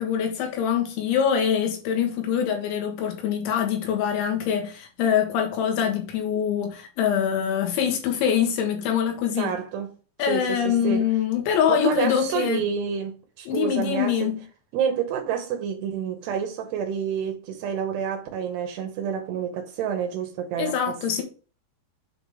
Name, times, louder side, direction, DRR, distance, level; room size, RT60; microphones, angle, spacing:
voice 1, 0.0-9.5 10.2-12.6 13.5-14.4 20.6-21.2, left 8 dB, 80° left, 3.8 m, -24 dB
voice 2, 9.4-9.9 10.3-11.1 11.7-14.4 14.7-21.2, right 7 dB, 75° right, 2.7 m, -29 dB
8.1 x 3.6 x 4.9 m
omnidirectional pair, 5.4 m